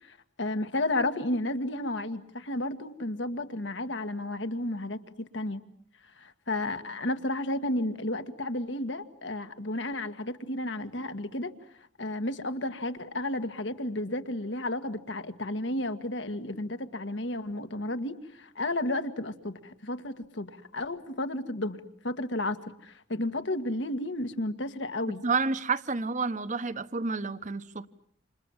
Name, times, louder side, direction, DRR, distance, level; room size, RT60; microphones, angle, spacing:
voice 1, 0.0-5.6 6.2-11.5 12.0-25.2, left 1 dB, 70° left, 9 dB, 1.8 m, -32 dB
voice 2, 25.2-27.9, right 4 dB, 40° right, 13 dB, 1.1 m, -30 dB
29.5 x 27.5 x 7.4 m, 0.65 s
head